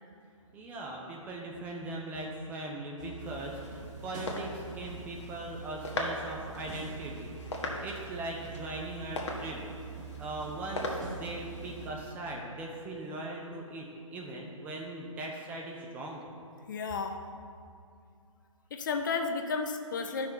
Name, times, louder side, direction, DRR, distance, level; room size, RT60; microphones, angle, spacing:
voice 1, 0.5-9.7 10.0-16.2, right 2 dB, 10° right, -1 dB, 0.5 m, -40 dB
sound 1, 3.0-12.0, right 4 dB, 35° right, 1.4 m, -44 dB
sound 2, 3.2-11.9, left 1 dB, 55° left, 1.4 m, -41 dB
voice 2, 16.7-17.2 18.7-20.3, left 4 dB, 35° left, 6 dB, 0.6 m, -32 dB
12.0 x 6.0 x 3.9 m, 2.3 s
figure-of-eight pair, 140°, 17 cm